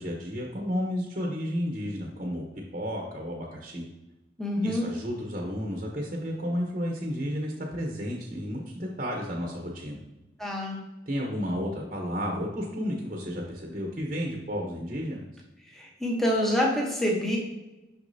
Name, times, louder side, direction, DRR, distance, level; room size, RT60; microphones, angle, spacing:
voice 1, 0.0-2.5 2.7-3.8 4.6-10.0 11.1-15.2, equal, 40° right, 0 dB, 0.9 m, -32 dB
voice 2, 4.4-4.9 10.4-10.8 15.7-17.4, equal, ahead, -2 dB, 0.9 m, -26 dB
6.3 x 5.9 x 2.7 m, 1.0 s
head